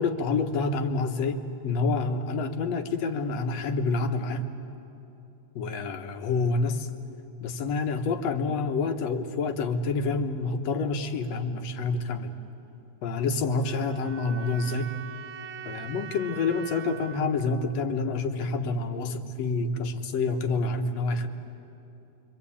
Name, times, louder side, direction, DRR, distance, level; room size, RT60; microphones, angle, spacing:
voice 1, 0.0-4.5 5.6-6.9 7.4-12.3 13.0-14.9 15.7-21.3, left 3 dB, 65° left, 7 dB, 2.4 m, -28 dB
sound 1, 13.6-18.6, right 9 dB, 85° right, 2.4 m, -43 dB
28.0 x 24.0 x 8.6 m, 3.0 s
omnidirectional pair, 3.3 m